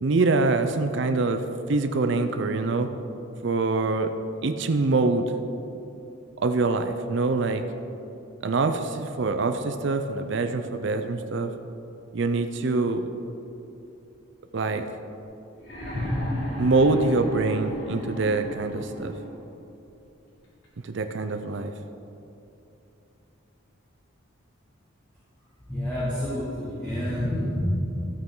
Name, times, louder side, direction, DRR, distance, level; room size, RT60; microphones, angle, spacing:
voice 1, 0.0-2.9 3.4-4.1 4.4-5.3 6.4-7.6 8.4-11.5 12.1-13.1 14.5-14.9 16.6-19.1 20.8-21.7, right 3 dB, 60° right, 7 dB, 0.5 m, -24 dB
sound 1, 15.6-19.4 20.6-20.7, equal, 60° left, 2.7 m, -33 dB
voice 2, 25.7-27.7, equal, 5° left, -12 dB, 2.3 m, -28 dB
13.0 x 8.8 x 3.8 m, 2.9 s
head